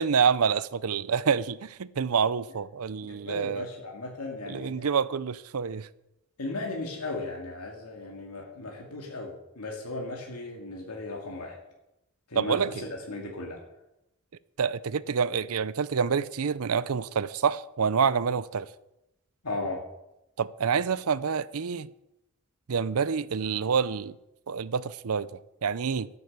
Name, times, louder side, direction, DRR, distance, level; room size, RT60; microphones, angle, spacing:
voice 1, 0.0-3.7 4.5-5.9 12.4-12.8 14.6-18.7 20.4-21.9 22.7-24.1 24.5-26.1, right 6 dB, 70° right, 0.5 m, -27 dB
voice 2, 3.0-4.9 6.4-11.6 12.3-13.6 19.4-19.8, left 2 dB, 90° left, 2.2 m, -36 dB
12.5 x 9.5 x 6.7 m
head